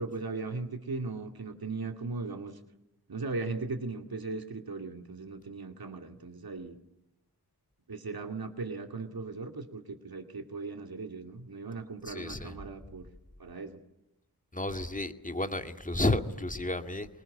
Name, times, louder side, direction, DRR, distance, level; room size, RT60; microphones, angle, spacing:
voice 1, 0.0-2.6 3.1-6.8 7.9-13.1 13.4-13.8, right 3 dB, 60° right, 5 dB, 2.3 m, -38 dB
voice 2, 12.1-12.5 14.5-17.1, left 2 dB, 20° left, 8 dB, 2.1 m, -31 dB
24.0 x 20.0 x 9.7 m, 0.90 s
cardioid pair, 50°, 40 cm